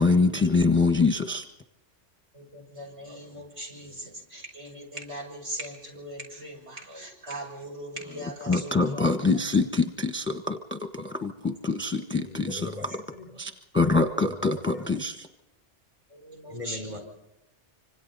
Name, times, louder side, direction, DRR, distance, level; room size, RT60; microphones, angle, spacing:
voice 1, 0.0-1.4 8.5-12.3 13.4-15.3, left 3 dB, 10° left, 6 dB, 1.1 m, -24 dB
voice 2, 2.3-9.1 11.9-12.0 16.1-17.0, right 1 dB, 70° right, -1 dB, 6.8 m, -40 dB
voice 3, 12.2-13.4 14.3-15.1 16.5-17.0, left 2 dB, 25° right, 3 dB, 3.8 m, -41 dB
26.0 x 26.0 x 4.1 m, 0.94 s
omnidirectional pair, 1.2 m